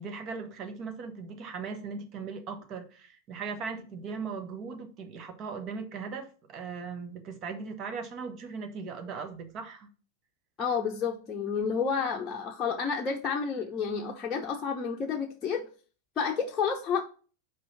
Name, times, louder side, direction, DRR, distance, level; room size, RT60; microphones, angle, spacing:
voice 1, 0.0-9.9, right 5 dB, 35° right, 1.2 m, -38 dB
voice 2, 10.6-15.6 16.2-17.0, left 6 dB, 20° left, 0.9 m, -30 dB
5.4 x 4.7 x 5.7 m
figure-of-eight pair, 90°, 0 cm